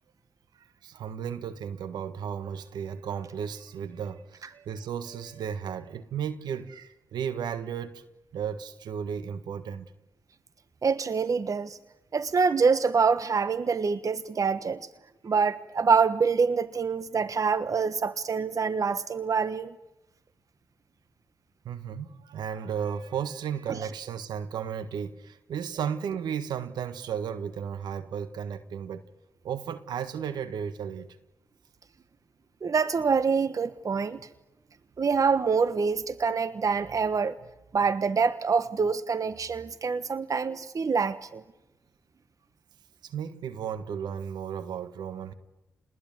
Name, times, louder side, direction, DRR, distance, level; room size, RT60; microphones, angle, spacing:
voice 1, 0.5-8.0 8.3-9.9 21.6-29.0 29.4-31.2 43.0-45.3, right 8 dB, 75° right, 1.5 m, -34 dB
voice 2, 10.8-11.8 12.1-14.8 15.2-19.7 32.6-34.2 35.0-37.3 37.7-41.4, right 5 dB, 50° right, 1.2 m, -25 dB
30.0 x 20.5 x 9.3 m
supercardioid pair, 40°, 7 cm